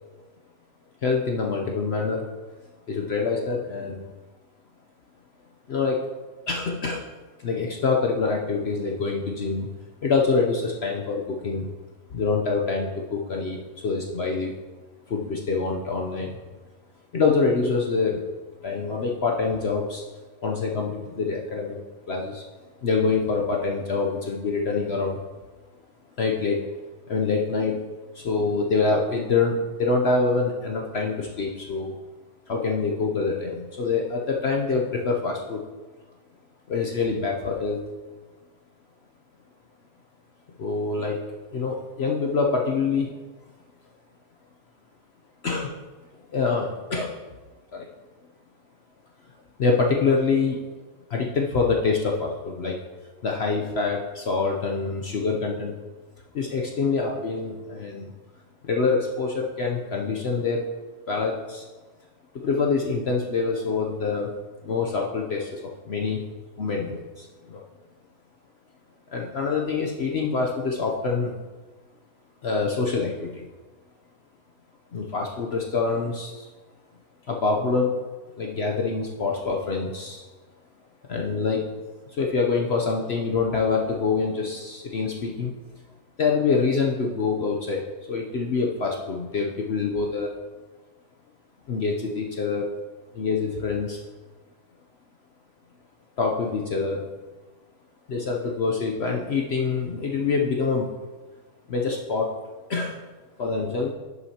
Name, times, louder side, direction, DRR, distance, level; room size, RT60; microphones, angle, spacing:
voice 1, 1.0-2.3 2.9-4.1 5.7-6.1 6.5-7.0 7.4-9.7 10.0-11.7 12.1-14.5 15.1-16.4 17.1-18.2 18.6-20.0 20.4-21.8 22.1-22.4 22.8-25.2 26.2-26.6 27.1-27.8 28.1-32.0 32.5-35.6 36.7-37.8 40.6-41.2 41.5-43.2 45.4-45.8 46.3-47.2 47.7-47.9 49.6-50.6 51.1-52.8 53.2-55.8 56.3-58.1 58.6-60.7 61.1-61.7 62.3-64.3 64.6-66.2 66.6-67.6 69.1-71.3 72.4-73.4 74.9-76.5 77.3-78.0 78.4-80.3 81.1-81.7 82.1-85.5 86.2-90.3 91.7-92.7 93.1-94.0 96.2-97.0 98.1-100.9 101.7-102.3 102.7-103.0 103.4-103.9, left 4 dB, 55° left, 0 dB, 0.8 m, -25 dB
11.0 x 6.9 x 2.8 m, 1.3 s
omnidirectional pair, 1.6 m